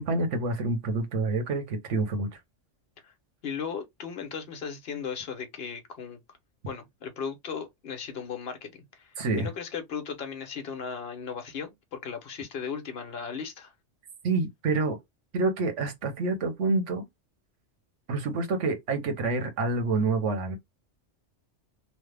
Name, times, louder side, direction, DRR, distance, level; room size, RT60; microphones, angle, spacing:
voice 1, 0.0-2.3 9.2-9.5 14.2-15.0 15.3-17.0 18.1-20.6, right 3 dB, 80° right, 1.3 m, -27 dB
voice 2, 3.4-6.2 6.7-13.7, left 6 dB, 60° left, 1.0 m, -37 dB
3.3 x 2.1 x 3.2 m
omnidirectional pair, 1.2 m